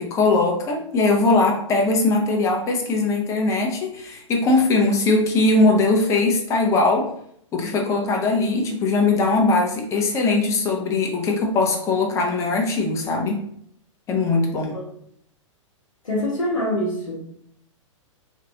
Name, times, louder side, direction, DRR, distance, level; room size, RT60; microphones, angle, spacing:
voice 1, 0.0-7.1 7.5-13.4 14.1-14.8, left 3 dB, 20° left, 1 dB, 0.5 m, -20 dB
voice 2, 16.0-17.3, left 1 dB, 80° left, -5 dB, 0.8 m, -25 dB
3.0 x 2.5 x 2.8 m, 0.69 s
figure-of-eight pair, 105°, 17 cm